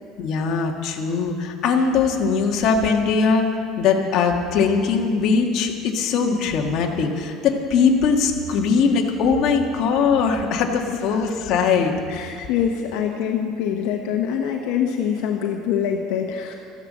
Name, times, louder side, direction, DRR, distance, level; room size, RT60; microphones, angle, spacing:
voice 1, 0.2-3.5 3.8-11.9 12.4-12.5, left 5 dB, 45° left, 1 dB, 1.6 m, -20 dB
voice 2, 12.1-16.5, left 8 dB, 70° left, 2 dB, 1.1 m, -24 dB
14.0 x 11.0 x 7.4 m, 2.3 s
cardioid pair, 165°, 0 cm